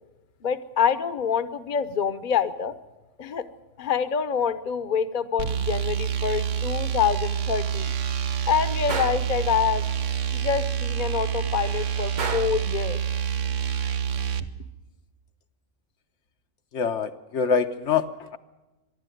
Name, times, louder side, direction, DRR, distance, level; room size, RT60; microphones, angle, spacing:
voice 1, 0.4-2.7 3.2-3.4 3.8-7.9 8.5-9.9 10.3-13.0, left 7 dB, 40° left, 12 dB, 0.9 m, -26 dB
sound 1, 5.4-14.5, right 8 dB, 80° right, 1.2 m, -27 dB
Gunshot gunfire, 8.9-9.3 12.2-12.7, right 4 dB, 40° right, 1.0 m, -31 dB
voice 2, 16.7-18.4, left 6 dB, 70° left, 7 dB, 1.2 m, -25 dB
24.5 x 11.5 x 9.2 m, 1.1 s
omnidirectional pair, 1.3 m